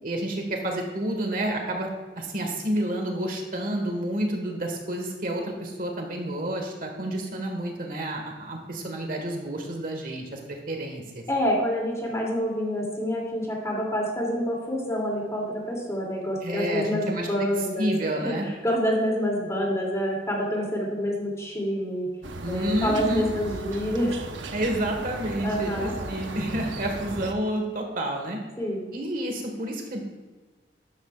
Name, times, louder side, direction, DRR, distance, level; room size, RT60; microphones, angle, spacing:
voice 1, 0.0-1.9 2.2-11.2 16.4-17.3 17.8-18.5 22.4-23.3 24.5-28.4 28.9-30.0, right 1 dB, 50° right, 2 dB, 1.5 m, -29 dB
voice 2, 11.3-22.1 22.5-24.3 25.4-26.0 28.6-28.9, equal, 15° left, -2 dB, 2.6 m, -27 dB
sound 1, 22.2-27.3, right 2 dB, 85° right, 0.9 m, -36 dB
12.5 x 11.5 x 2.4 m, 1.4 s
head